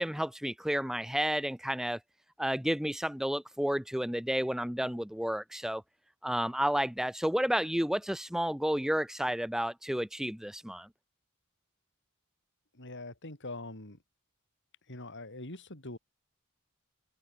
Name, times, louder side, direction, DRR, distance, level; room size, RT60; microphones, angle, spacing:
voice 1, 0.0-2.0 2.4-5.8 6.2-10.9, equal, ahead, 0.8 m, -31 dB
voice 2, 12.7-14.0 14.9-16.0, left 2 dB, 55° left, 5.8 m, -43 dB
head